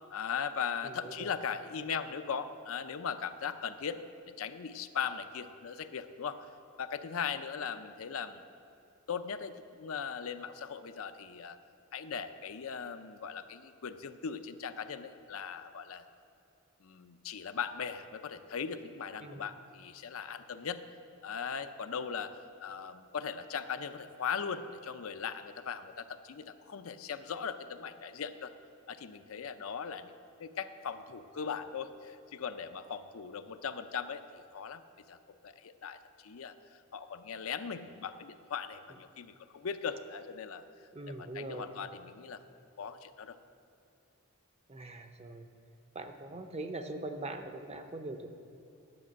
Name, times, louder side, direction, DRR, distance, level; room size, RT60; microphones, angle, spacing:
voice 1, 0.1-4.0 4.3-6.5 6.8-8.4 9.1-11.6 11.9-16.0 16.8-20.8 21.2-28.5 28.9-30.1 30.4-34.2 34.5-34.8 35.1-35.2 35.4-36.5 36.9-40.6 41.1-42.4 42.8-43.4, left 6 dB, 75° left, 10 dB, 0.5 m, -39 dB
voice 2, 0.8-1.4 19.2-19.4 40.9-41.8 44.7-45.5 45.9-48.3, right 2 dB, 30° right, 7 dB, 0.6 m, -42 dB
11.0 x 6.0 x 7.5 m, 2.6 s
head